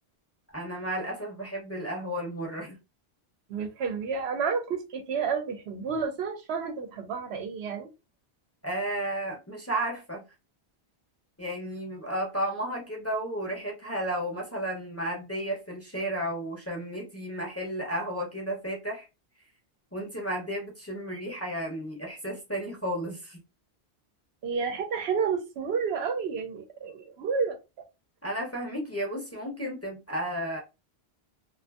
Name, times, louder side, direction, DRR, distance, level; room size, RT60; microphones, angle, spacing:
voice 1, 0.5-2.8 8.6-10.2 11.4-19.1 19.9-23.4 28.2-30.6, right 1 dB, 15° left, 0.6 m, -33 dB
voice 2, 3.5-7.9 24.4-27.6, right 5 dB, 80° right, 0.9 m, -30 dB
2.5 x 2.5 x 2.3 m
omnidirectional pair, 1.1 m